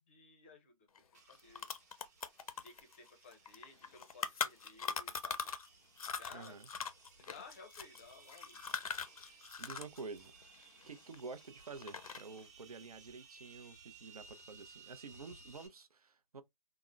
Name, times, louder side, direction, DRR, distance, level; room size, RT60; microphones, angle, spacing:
voice 1, 0.1-1.7 2.6-5.5 6.2-6.6 7.2-8.6, left 4 dB, 20° left, 0.5 m, -56 dB
sound 1, 1.0-1.1 1.3-5.7 6.0-10.0 10.2-11.4 11.8-12.4, left 6 dB, 75° left, 0.5 m, -41 dB
sound 2, 1.1-15.7, right 4 dB, 30° right, 0.7 m, -60 dB
voice 2, 6.3-6.7 9.2-10.3 10.9-16.4, right 4 dB, 90° right, 0.6 m, -49 dB
3.6 x 2.0 x 2.4 m
hypercardioid pair, 155°, 18 cm